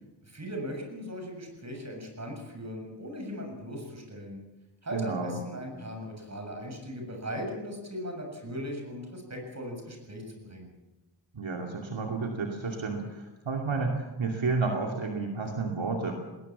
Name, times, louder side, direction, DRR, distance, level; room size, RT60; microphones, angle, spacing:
voice 1, 0.2-4.4 4.8-10.7, equal, 35° right, 2 dB, 7.1 m, -38 dB
voice 2, 4.9-5.4 11.3-16.1, right 4 dB, 75° right, 2 dB, 2.7 m, -31 dB
20.5 x 18.5 x 7.4 m, 1.1 s
wide cardioid pair, 115°, 46 cm